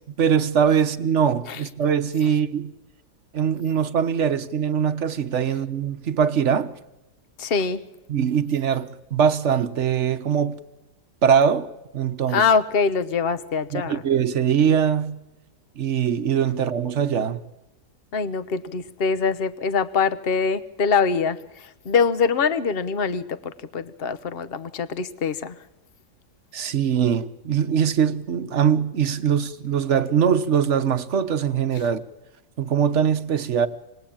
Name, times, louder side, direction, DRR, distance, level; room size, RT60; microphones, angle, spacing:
voice 1, 0.2-2.7 3.3-6.7 8.1-10.6 11.2-12.5 13.7-15.2 15.8-17.4 26.5-32.0 32.6-33.7, right 7 dB, 50° right, 1.3 m, -22 dB
voice 2, 7.4-7.8 12.3-14.0 18.1-21.4 21.8-25.6, left 5 dB, 40° left, 1.1 m, -23 dB
27.0 x 21.0 x 8.8 m
omnidirectional pair, 1.7 m